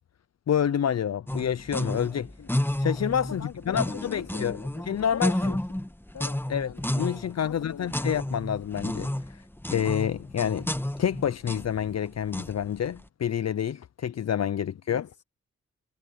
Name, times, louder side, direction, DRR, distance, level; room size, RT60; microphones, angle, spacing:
voice 1, 0.5-2.3 2.8-4.6 4.9-5.3 6.5-9.4 9.7-10.7 11.0-15.0, left 9 dB, 55° left, 0.7 m, -28 dB
sound 1, 1.3-13.0, left 1 dB, 5° left, 1.4 m, -31 dB
voice 2, 3.2-5.6 6.1-6.8 7.4-8.1 14.6-15.2, left 7 dB, 75° left, 3.8 m, -42 dB
supercardioid pair, 40°, 31 cm